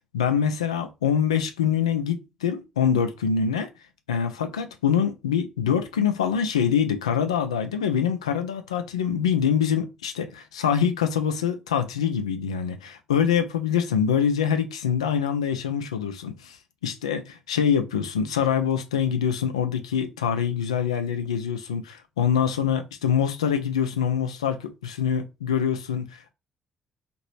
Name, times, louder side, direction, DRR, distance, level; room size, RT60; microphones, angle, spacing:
voice 1, 0.1-3.7 4.1-16.6 16.8-26.3, left 8 dB, 85° left, 0.3 m, -25 dB
2.9 x 2.5 x 3.1 m
figure-of-eight pair, 45°, 3 cm